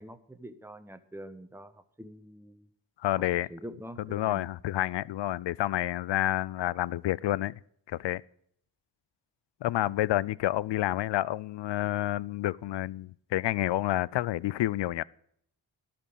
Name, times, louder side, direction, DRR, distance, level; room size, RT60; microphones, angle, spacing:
voice 1, 0.0-2.7 3.2-4.5 9.8-9.9, equal, 5° right, 1.2 m, -46 dB
voice 2, 3.0-3.5 4.1-7.5 7.9-8.2 9.6-15.0, left 15 dB, 65° left, 0.5 m, -29 dB
12.5 x 5.9 x 8.8 m
supercardioid pair, 45°, 48 cm